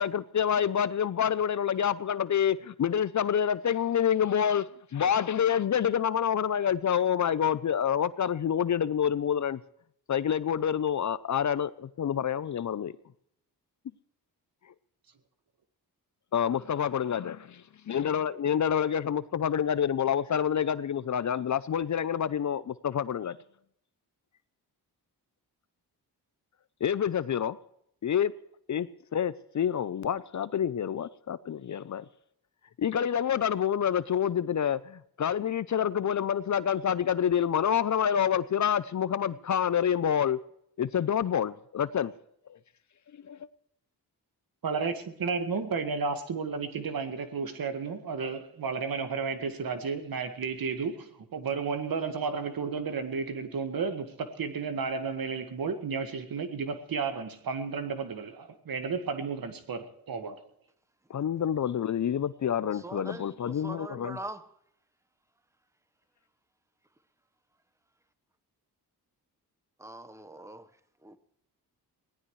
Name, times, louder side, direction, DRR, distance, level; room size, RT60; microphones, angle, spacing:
voice 1, 0.0-4.7 4.9-9.6 10.1-12.9 16.3-17.4 17.9-23.4 26.8-27.6 28.0-28.3 28.7-32.0 32.8-40.4 40.8-42.1 42.5-42.6 43.3-43.4 61.1-64.2, left 8 dB, 45° left, 0.6 m, -27 dB
voice 2, 44.6-60.4, right 5 dB, 60° right, 1.8 m, -32 dB
voice 3, 62.7-64.4 69.8-70.7 71.0-71.2, right 2 dB, 5° right, 1.2 m, -42 dB
23.0 x 18.0 x 3.2 m
cardioid pair, 80°, 40 cm